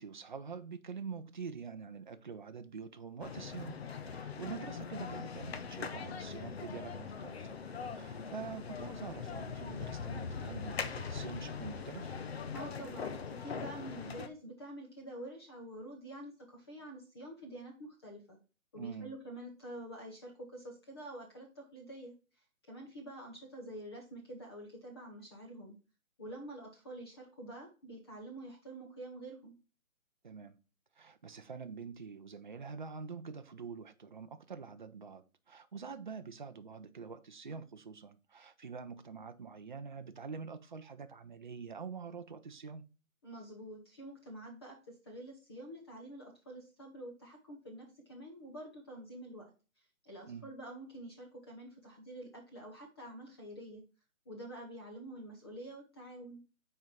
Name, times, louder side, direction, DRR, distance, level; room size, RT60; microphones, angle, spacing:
voice 1, 0.0-7.6 7.8-12.1 18.8-19.1 30.2-30.6 31.0-42.8 50.3-50.5, right 5 dB, 35° right, 0.5 m, -46 dB
sound 1, 3.2-14.3, left 6 dB, 45° left, 0.7 m, -41 dB
voice 2, 4.4-4.7 12.5-18.4 18.7-22.1 22.7-25.8 26.2-29.5 43.2-49.5 50.0-53.8 54.3-56.4, right 1 dB, 20° left, 0.8 m, -47 dB
6.0 x 4.5 x 5.1 m
hypercardioid pair, 165°, 42 cm